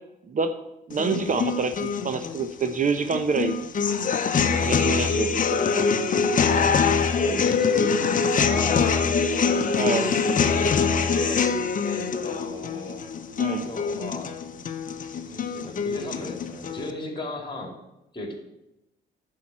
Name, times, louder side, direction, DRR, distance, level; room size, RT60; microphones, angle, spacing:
sound 1, 0.9-16.9, left 5 dB, 40° left, 0.8 m, -24 dB
voice 1, 0.9-3.5 4.6-5.9 9.7-10.2 13.4-13.7, right 4 dB, 40° right, 9 dB, 0.7 m, -27 dB
voice 2, 7.2-9.8 10.2-11.5 11.8-13.0 13.6-14.3 15.3-17.8 18.1-18.3, left 1 dB, 25° left, 3 dB, 2.6 m, -36 dB
9.4 x 4.8 x 7.4 m, 0.92 s
cardioid pair, 90°, 20 cm